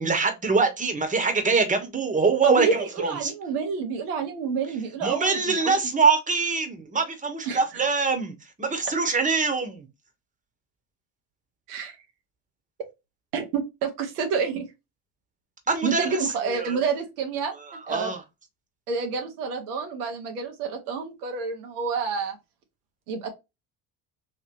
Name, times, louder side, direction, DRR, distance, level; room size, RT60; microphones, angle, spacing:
voice 1, 0.0-3.3 5.0-9.9 15.7-16.8 17.7-18.2, right 4 dB, 15° right, 1.1 m, -24 dB
voice 2, 2.4-5.8 7.5-7.6 11.7-12.0 13.3-14.6 15.8-18.1 18.9-22.4 23.1-23.3, right 5 dB, 85° right, 1.0 m, -28 dB
3.1 x 2.9 x 2.6 m
hypercardioid pair, 65°, 45 cm